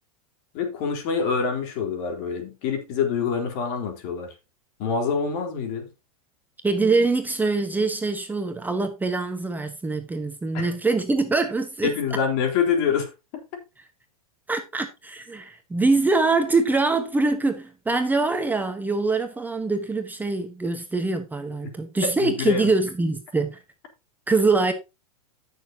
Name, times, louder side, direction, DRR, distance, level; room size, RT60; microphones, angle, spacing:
voice 1, 0.5-4.3 4.8-5.9 10.5-10.7 11.8-13.4 22.0-22.7, left 6 dB, 50° left, 3.7 m, -26 dB
voice 2, 6.6-11.9 14.5-23.6 24.3-24.7, right 3 dB, 10° right, 1.2 m, -24 dB
15.0 x 6.7 x 2.9 m
hypercardioid pair, 110°, 18 cm